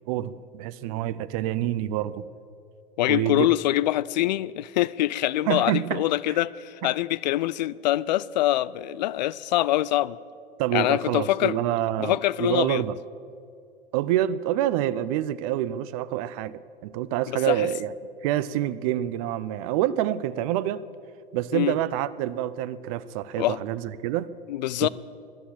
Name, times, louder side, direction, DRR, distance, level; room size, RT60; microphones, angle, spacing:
voice 1, 0.1-2.2 3.1-3.5 5.5-6.4 6.8-6.9 10.6-13.0 13.9-17.9 18.2-20.8 21.3-24.3 24.8-24.9, right 12 dB, 40° right, 0.5 m, -27 dB
voice 2, 3.0-10.2 10.7-11.6 12.0-12.8 17.5-17.7 21.5-21.8 23.4-23.6 24.5-24.9, left 15 dB, 50° left, 0.5 m, -24 dB
14.0 x 11.5 x 8.7 m
figure-of-eight pair, 90°, 29 cm